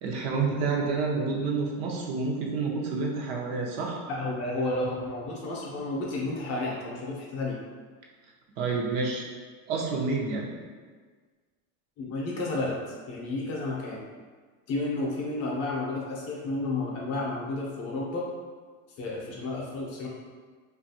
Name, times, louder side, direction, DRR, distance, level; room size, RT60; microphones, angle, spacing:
voice 1, 0.0-4.0 8.6-9.2 9.7-10.5, right 4 dB, 75° right, -1 dB, 0.7 m, -29 dB
voice 2, 4.1-7.6 12.0-12.8 13.1-14.0 14.7-18.2 19.0-20.1, left 2 dB, 35° left, -3 dB, 0.5 m, -31 dB
2.7 x 2.4 x 2.7 m, 1.5 s
supercardioid pair, 150°, 41 cm